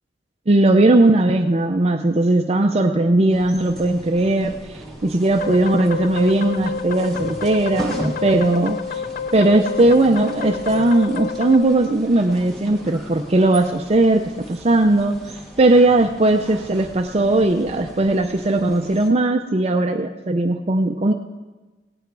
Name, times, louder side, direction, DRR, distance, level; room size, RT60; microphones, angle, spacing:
voice 1, 0.5-8.8 9.3-14.2 14.5-21.1, right 2 dB, 35° right, 4 dB, 0.6 m, -18 dB
sound 1, 3.3-19.1, right 1 dB, ahead, 1.6 m, -37 dB
sound 2, 5.4-11.6, left 6 dB, 55° left, 0.3 m, -29 dB
17.0 x 8.9 x 4.7 m, 1.2 s
head